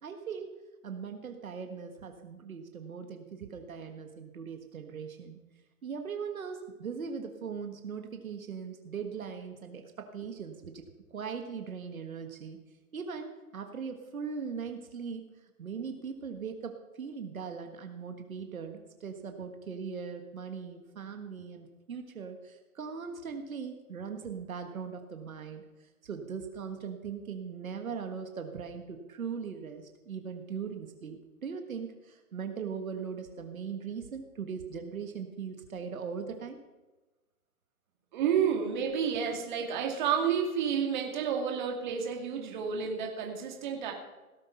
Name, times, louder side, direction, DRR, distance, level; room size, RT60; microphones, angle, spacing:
voice 1, 0.0-0.5 0.8-5.4 5.8-12.6 12.9-15.2 15.6-25.6 26.0-36.6, right 6 dB, 70° right, 5 dB, 1.6 m, -40 dB
voice 2, 38.1-43.9, right 7 dB, 30° right, 2 dB, 2.3 m, -30 dB
17.5 x 8.2 x 5.8 m, 1.1 s
hypercardioid pair, 160°, 43 cm